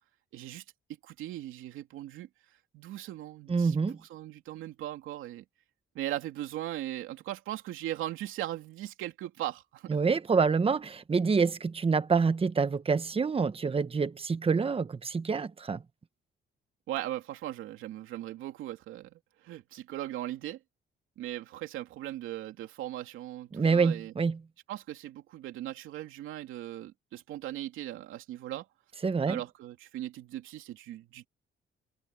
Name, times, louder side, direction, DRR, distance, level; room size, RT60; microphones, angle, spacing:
voice 1, 0.3-0.6 1.0-2.3 2.7-5.4 5.9-10.0 16.9-20.6 21.2-24.1 24.7-28.6 29.2-31.3, right 13 dB, 90° right, 2.9 m, -39 dB
voice 2, 3.5-4.0 9.9-15.8 23.5-24.4 29.0-29.4, right 5 dB, 30° right, 1.1 m, -27 dB
cardioid pair, 90°, 20 cm